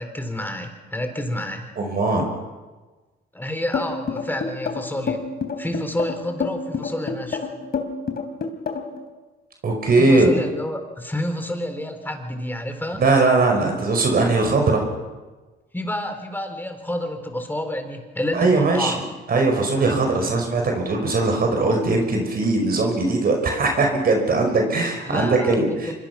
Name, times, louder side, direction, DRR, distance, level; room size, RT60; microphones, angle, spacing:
voice 1, 0.0-1.7 3.3-5.2 5.6-7.5 10.0-13.0 15.7-19.0 25.1-25.9, left 1 dB, 10° left, 6 dB, 4.2 m, -29 dB
voice 2, 1.8-2.2 9.6-10.3 13.0-14.8 18.3-18.9 19.3-25.9, right 3 dB, 50° right, 3 dB, 5.4 m, -20 dB
sound 1, 3.7-9.0, left 5 dB, 50° left, 3.5 m, -27 dB
25.5 x 23.0 x 6.0 m, 1.2 s
cardioid pair, 90°, 20 cm